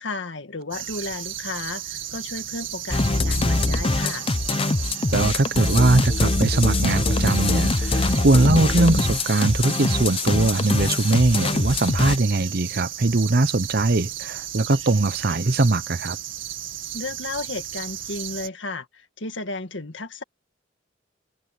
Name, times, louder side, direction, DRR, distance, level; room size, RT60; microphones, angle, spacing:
voice 1, 0.0-4.3 16.9-20.2, left 3 dB, 65° left, 2.0 m, -33 dB
sound 1, 0.7-18.5, right 11 dB, 80° right, 2.1 m, -34 dB
sound 2, 2.9-12.2, left 2 dB, 30° left, 0.7 m, -23 dB
voice 2, 5.1-16.2, right 2 dB, 55° right, 0.9 m, -21 dB
head